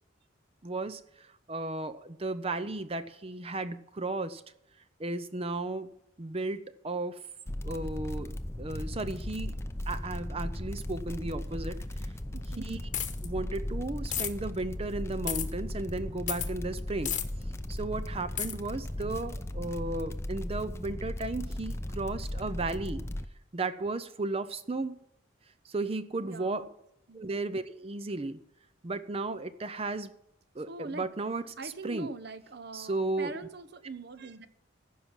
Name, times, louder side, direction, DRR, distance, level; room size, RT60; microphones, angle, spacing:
voice 1, 0.6-4.4 5.0-5.9 6.2-7.3 7.6-8.3 8.6-9.6 9.9-12.1 12.6-12.9 13.2-17.2 17.7-23.0 23.5-25.0 25.6-26.6 27.1-28.4 28.8-30.1 30.5-32.1 32.7-33.3, right 2 dB, 30° right, 12 dB, 0.6 m, -34 dB
sound 1, 7.5-23.3, left 1 dB, 15° left, 0.6 m, -37 dB
voice 2, 12.3-12.7 26.2-26.7 27.1-27.2 30.7-31.1 31.6-34.5, right 3 dB, 60° right, 11 dB, 0.9 m, -42 dB
sound 2, 12.9-13.3 14.1-14.3 15.3-15.5 16.3-16.5 17.1-17.2 18.4-18.5, left 11 dB, 40° left, 1.1 m, -31 dB
15.0 x 6.0 x 7.3 m, 0.81 s
head